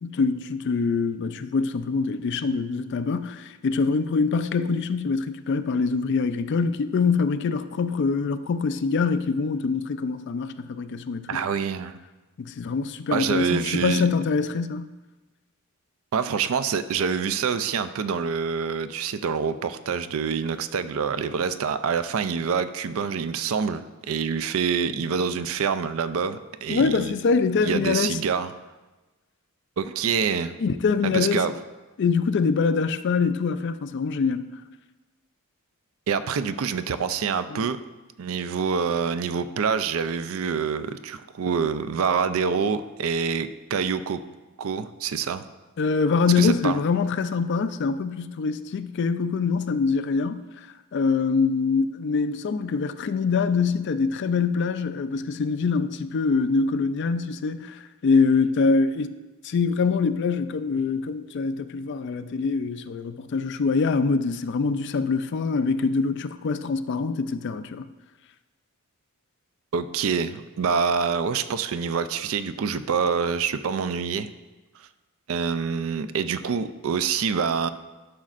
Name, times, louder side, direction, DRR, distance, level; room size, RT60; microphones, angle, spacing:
voice 1, 0.0-11.4 12.4-14.9 26.7-28.2 30.6-31.5 32.0-34.6 37.5-37.7 45.8-50.4 50.9-59.1 59.4-67.9, left 4 dB, 50° left, 0.3 m, -24 dB
voice 2, 11.3-11.9 13.1-14.0 16.1-27.1 27.6-28.5 29.8-30.5 31.0-31.5 36.1-37.8 38.2-44.2 44.6-45.4 46.4-46.8 69.7-74.3 75.3-77.7, right 6 dB, 65° right, 0.4 m, -26 dB
11.5 x 6.2 x 2.5 m
head